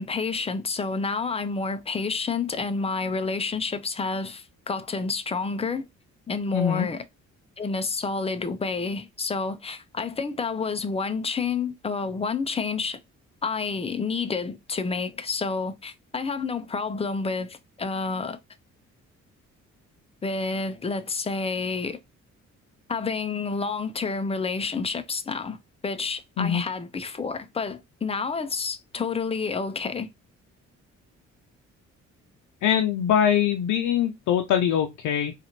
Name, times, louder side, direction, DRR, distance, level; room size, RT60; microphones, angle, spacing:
voice 1, 0.0-5.9 6.3-7.0 7.6-13.0 13.4-18.4 20.2-22.0 22.9-25.6 25.8-30.1, left 4 dB, 20° left, 0.6 m, -29 dB
voice 2, 6.5-6.9 26.4-26.6 32.6-35.3, left 9 dB, 75° left, 0.6 m, -23 dB
3.9 x 2.5 x 3.0 m
cardioid pair, 90°, 30 cm